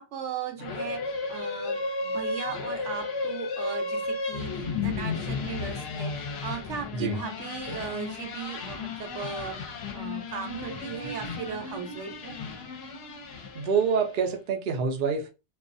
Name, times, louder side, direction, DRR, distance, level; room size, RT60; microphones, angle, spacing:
voice 1, 0.0-9.6 9.9-12.3, right 6 dB, 75° right, 1.0 m, -37 dB
sound 1, 0.6-14.2, left 4 dB, 65° left, 0.8 m, -34 dB
voice 2, 13.5-15.3, right 6 dB, 60° right, 0.6 m, -26 dB
2.3 x 2.3 x 2.6 m
omnidirectional pair, 1.3 m